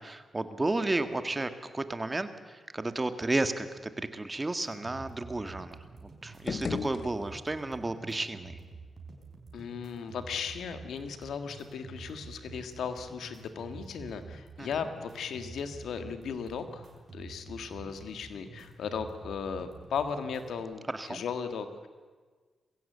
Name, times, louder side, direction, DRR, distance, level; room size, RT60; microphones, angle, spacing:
voice 1, 0.0-8.6 14.6-14.7 20.9-21.2, right 2 dB, 25° right, 10 dB, 1.9 m, -33 dB
sound 1, 4.6-20.6, right 4 dB, 60° right, 4.6 m, -49 dB
sound 2, 6.3-7.7, left 5 dB, 55° left, 1.0 m, -37 dB
voice 2, 9.5-16.8 17.1-21.9, left 6 dB, 80° left, 9 dB, 1.7 m, -36 dB
22.0 x 16.0 x 8.0 m, 1.4 s
supercardioid pair, 55°, 0 cm